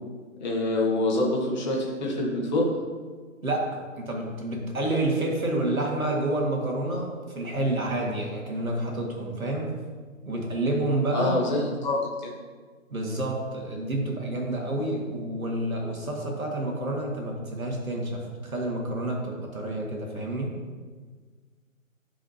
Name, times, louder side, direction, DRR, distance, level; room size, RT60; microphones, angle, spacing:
voice 1, 0.4-2.7 11.1-12.3, left 2 dB, 35° left, -2 dB, 1.4 m, -26 dB
voice 2, 3.4-9.8 10.3-11.4 12.9-20.6, right 1 dB, 80° right, 0 dB, 2.0 m, -29 dB
11.5 x 5.0 x 2.8 m, 1.5 s
figure-of-eight pair, 150°, 41 cm